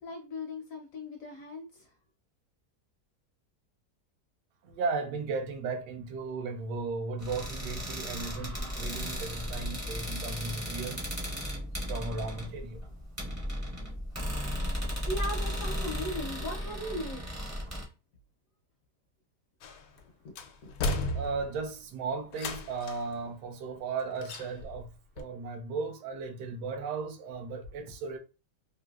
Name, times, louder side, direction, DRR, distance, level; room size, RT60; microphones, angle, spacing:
voice 1, 0.0-1.9 15.0-17.4 20.2-20.3 20.6-20.7, left 1 dB, 70° left, 0.8 m, -38 dB
voice 2, 4.6-11.0 11.9-12.8 21.1-28.2, right 4 dB, 80° right, 1.2 m, -36 dB
sound 1, 7.2-17.8, equal, 15° right, 0.6 m, -35 dB
sound 2, 19.6-20.0 20.4-21.7 22.3-23.1 24.2-24.9 25.2-25.3, left 2 dB, 85° left, 1.2 m, -34 dB
3.1 x 2.7 x 2.3 m
omnidirectional pair, 1.8 m